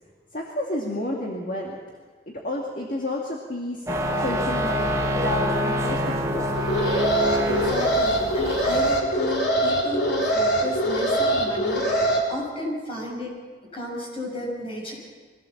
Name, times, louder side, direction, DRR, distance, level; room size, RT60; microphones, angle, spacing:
voice 1, 0.3-1.8 2.3-3.9 4.2-6.5, left 1 dB, 50° left, -1 dB, 2.2 m, -30 dB
sound 1, 3.9-9.0, equal, 20° right, 1.8 m, -26 dB
Alarm, 6.5-12.2, right 1 dB, 75° left, 4.0 m, -23 dB
voice 2, 7.4-13.3 13.7-14.9, left 1 dB, 30° left, -1 dB, 6.6 m, -33 dB
23.5 x 16.5 x 7.3 m, 1.5 s
head